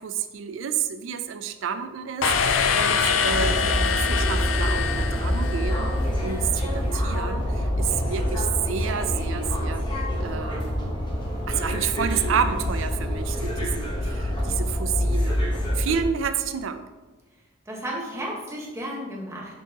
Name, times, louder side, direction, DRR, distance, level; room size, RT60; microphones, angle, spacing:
voice 1, 0.0-6.0 6.2-9.9 10.2-11.0 11.5-15.4 15.7-16.8, right 7 dB, 75° right, 10 dB, 0.4 m, -30 dB
sound 1, 2.2-6.0, left 6 dB, 75° left, 0.5 m, -24 dB
sound 2, 3.3-16.0, equal, 25° left, 1.0 m, -26 dB
voice 2, 17.7-19.5, equal, 15° right, -3 dB, 1.2 m, -33 dB
6.2 x 5.3 x 2.9 m, 1.2 s
head